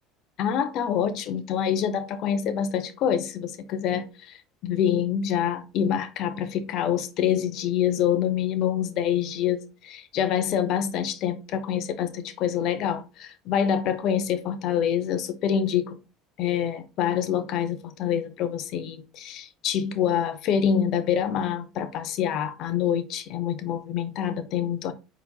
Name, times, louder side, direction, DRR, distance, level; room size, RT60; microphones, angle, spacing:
voice 1, 0.4-16.0 16.4-24.9, left 9 dB, 60° left, 0.6 m, -26 dB
4.4 x 4.0 x 2.2 m
hypercardioid pair, 70°, 0 cm